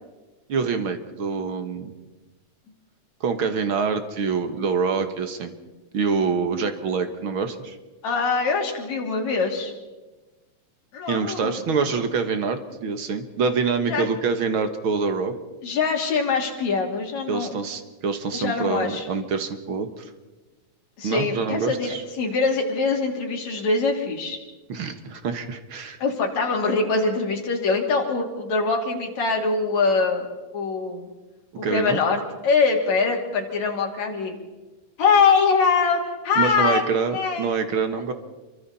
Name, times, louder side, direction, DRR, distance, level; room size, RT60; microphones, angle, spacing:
voice 1, 0.5-1.9 3.2-5.5 5.9-7.8 11.1-15.3 17.3-20.1 21.0-22.0 24.7-26.0 31.6-32.0 36.4-38.1, right 5 dB, 50° right, 8 dB, 2.1 m, -26 dB
voice 2, 8.0-9.7 10.9-11.5 13.9-14.1 15.6-17.6 18.3-19.1 21.0-24.4 26.0-30.3 30.5-31.1 31.6-34.4 35.0-36.8 37.1-37.5 37.9-38.0, left 4 dB, 70° left, 0 dB, 4.3 m, -23 dB
27.5 x 24.5 x 4.3 m, 1.2 s
omnidirectional pair, 3.3 m